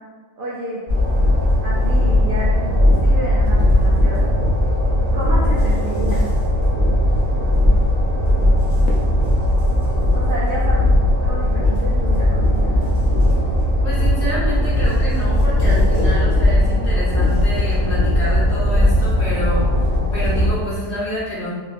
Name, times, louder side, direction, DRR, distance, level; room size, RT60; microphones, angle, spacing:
voice 1, 0.4-0.8 1.6-2.7 3.0-4.3 5.1-6.3 10.1-10.8 11.2-12.9, right 1 dB, 75° right, -7 dB, 0.5 m, -29 dB
Train, 0.9-20.5, left 1 dB, 30° right, 0.5 m, -17 dB
Fireworks, 8.8-11.2, left 1 dB, 75° left, 1.0 m, -37 dB
voice 2, 13.8-19.6 20.1-21.5, equal, 50° left, -8 dB, 1.0 m, -28 dB
3.1 x 2.6 x 2.4 m, 1.4 s
omnidirectional pair, 1.6 m